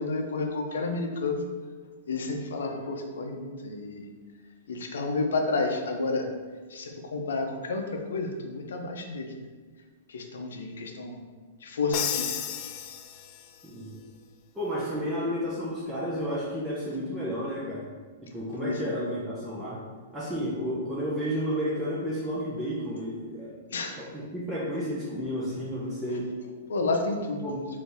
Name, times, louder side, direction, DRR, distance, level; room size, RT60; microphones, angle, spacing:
voice 1, 0.0-1.5 2.1-4.1 4.7-6.3 6.7-9.3 10.1-11.2 11.6-12.3 18.6-18.9 23.7-24.0 26.7-27.4, left 3 dB, 85° left, 3 dB, 0.6 m, -30 dB
Crash cymbal, 11.9-13.7, left 9 dB, 45° left, 0.3 m, -33 dB
voice 2, 13.6-14.0 14.5-17.9 18.2-19.8 20.1-23.6 24.0-26.3 27.4-27.6, equal, 5° right, -9 dB, 0.8 m, -31 dB
4.3 x 2.7 x 3.4 m, 1.5 s
hypercardioid pair, 135°, 0 cm